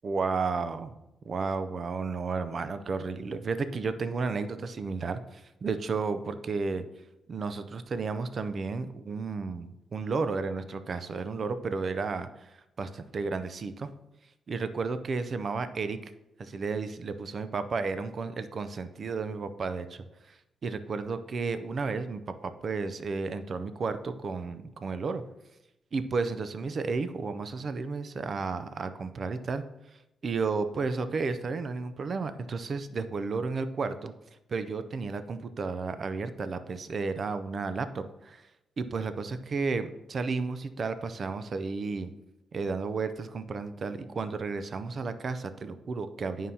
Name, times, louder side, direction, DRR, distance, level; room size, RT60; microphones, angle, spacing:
voice 1, 0.0-1.0 1.3-6.8 7.3-13.9 14.5-16.1 16.4-25.2 25.9-29.6 30.2-34.1 34.5-38.5 38.8-42.1 42.5-46.5, right 4 dB, 50° right, 11 dB, 0.5 m, -32 dB
9.4 x 5.4 x 2.8 m, 0.89 s
cardioid pair, 95°, 0 cm